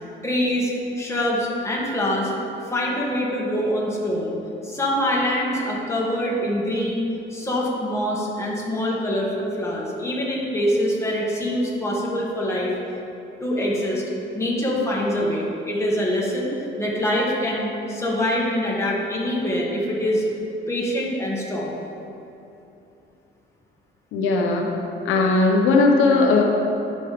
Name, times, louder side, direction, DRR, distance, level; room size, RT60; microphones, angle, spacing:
voice 1, 0.2-0.7 1.0-2.3 2.7-4.3 4.6-12.7 13.4-14.0 14.3-20.2 20.7-21.8, equal, 15° left, -4 dB, 1.8 m, -24 dB
voice 2, 24.1-24.7 25.0-26.4, left 3 dB, 90° left, 1 dB, 0.8 m, -18 dB
10.5 x 5.3 x 3.4 m, 2.9 s
cardioid pair, 90°, 20 cm